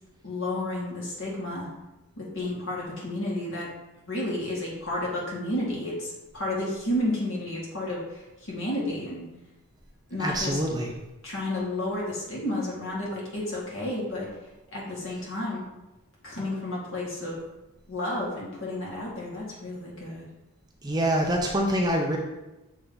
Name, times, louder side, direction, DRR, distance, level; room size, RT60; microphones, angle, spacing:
voice 1, 0.2-1.7 2.2-3.7 4.1-9.2 10.1-10.6 11.2-14.3 14.7-15.6 16.2-17.4 17.9-20.3, left 1 dB, 60° left, -4 dB, 2.0 m, -31 dB
voice 2, 10.2-10.9 20.8-22.2, right 1 dB, 20° right, 1 dB, 0.5 m, -25 dB
7.2 x 3.3 x 3.9 m, 1.0 s
head